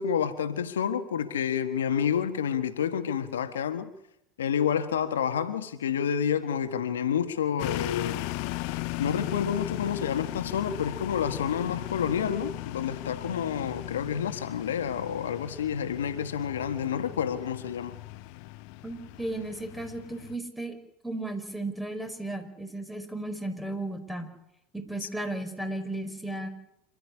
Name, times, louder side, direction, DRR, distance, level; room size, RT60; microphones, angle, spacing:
voice 1, 0.0-3.9 4.4-8.3 8.7-18.0 25.0-25.1, left 8 dB, 80° left, 1.6 m, -29 dB
sound 1, 7.6-20.4, left 19 dB, 60° left, 0.8 m, -37 dB
voice 2, 18.8-20.8 21.0-24.3 24.7-26.5, right 2 dB, 5° right, 5.0 m, -35 dB
27.0 x 13.0 x 9.9 m
hypercardioid pair, 85°, 0 cm